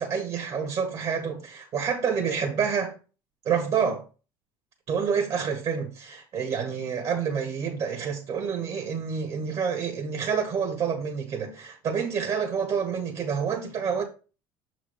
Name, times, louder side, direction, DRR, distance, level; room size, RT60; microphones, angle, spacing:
voice 1, 0.0-2.9 3.4-4.0 4.9-14.0, right 6 dB, 55° right, 1.7 m, -28 dB
6.5 x 4.9 x 3.4 m
supercardioid pair, 100°, 13 cm